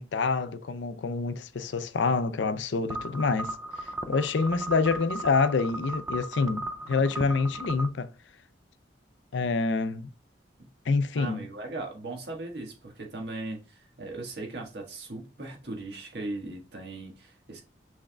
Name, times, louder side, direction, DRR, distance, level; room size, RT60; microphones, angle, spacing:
voice 1, 0.0-3.6 4.1-8.1 9.3-10.1 10.9-11.5, left 4 dB, 80° left, 0.5 m, -27 dB
sound 1, 2.9-7.9, right 1 dB, 10° right, 0.3 m, -36 dB
voice 2, 11.1-17.6, right 2 dB, 65° right, 1.4 m, -38 dB
6.3 x 3.5 x 2.3 m
head